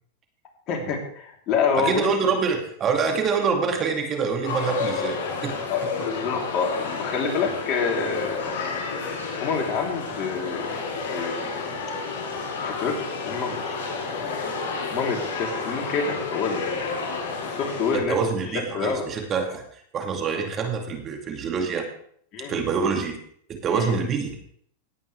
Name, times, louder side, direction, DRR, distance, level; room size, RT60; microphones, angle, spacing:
voice 1, 0.7-2.1 5.7-8.9 9.4-10.8 11.1-11.5 12.6-14.4 14.9-16.9 17.4-19.1 22.3-22.6 23.7-24.0, left 5 dB, 45° left, 0 dB, 3.5 m, -28 dB
voice 2, 1.8-5.6 17.9-21.9 22.5-23.2 23.5-24.4, right 5 dB, 30° right, 3 dB, 2.3 m, -26 dB
sound 1, 4.4-18.0, left 4 dB, 70° left, 5.5 m, -30 dB
18.0 x 9.1 x 3.4 m, 0.63 s
hypercardioid pair, 115°, 0 cm